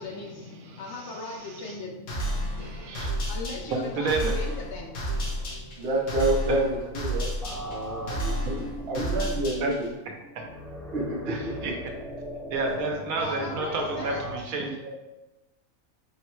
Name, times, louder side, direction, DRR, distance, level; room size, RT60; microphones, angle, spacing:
voice 1, 0.0-5.7 13.2-14.2, left 3 dB, 65° left, 0 dB, 0.8 m, -39 dB
voice 2, 0.6-1.8 2.5-3.2 3.8-4.3 6.5-6.6 8.4-8.5 9.6-9.7 10.3-10.4 11.3-11.7 12.5-14.9, right 3 dB, 80° right, 2 dB, 1.1 m, -31 dB
sound 1, 2.1-10.0, equal, 80° left, 1.5 m, -32 dB
voice 3, 5.8-7.3 7.6-9.9 10.9-11.3, right 1 dB, 55° right, -3 dB, 0.9 m, -29 dB
sound 2, 7.4-14.4, equal, 5° left, 0.6 m, -39 dB
3.8 x 2.1 x 4.3 m, 1.1 s
omnidirectional pair, 1.5 m